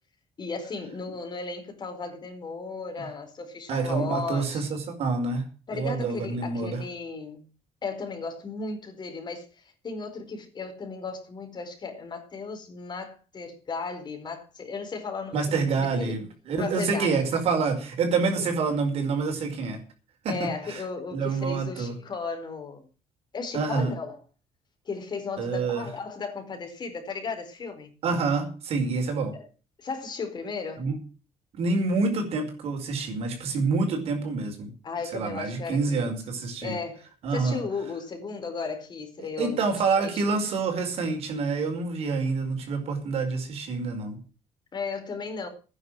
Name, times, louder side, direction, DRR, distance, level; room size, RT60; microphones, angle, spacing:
voice 1, 0.4-4.7 5.7-7.5 7.8-16.2 16.6-17.2 18.4-18.5 20.3-22.9 23.3-24.2 24.8-27.9 29.3-29.4 29.8-30.9 34.8-36.2 36.6-39.6 40.0-40.3 44.7-45.5, left 4 dB, 40° left, 4.7 m, -35 dB
voice 2, 3.7-5.4 5.7-6.8 15.3-19.8 20.2-20.8 21.1-21.9 23.5-23.9 25.4-25.9 28.0-29.3 30.8-31.0 31.6-34.7 35.1-36.7 37.2-37.6 39.4-44.2, right 4 dB, 70° right, 5.2 m, -27 dB
12.5 x 10.0 x 7.6 m
cardioid pair, 95°, 11 cm